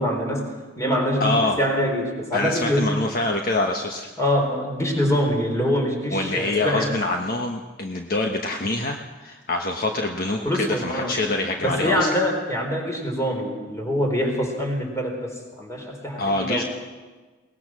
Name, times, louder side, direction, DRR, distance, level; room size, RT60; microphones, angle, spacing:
voice 1, 0.0-3.0 4.2-7.0 10.4-11.2 11.6-15.3 15.6-16.6, equal, 15° left, 1 dB, 4.2 m, -24 dB
voice 2, 1.2-1.6 2.3-4.1 6.1-12.2 16.2-16.6, left 2 dB, 50° left, 2 dB, 1.2 m, -25 dB
22.0 x 19.0 x 6.3 m, 1.3 s
head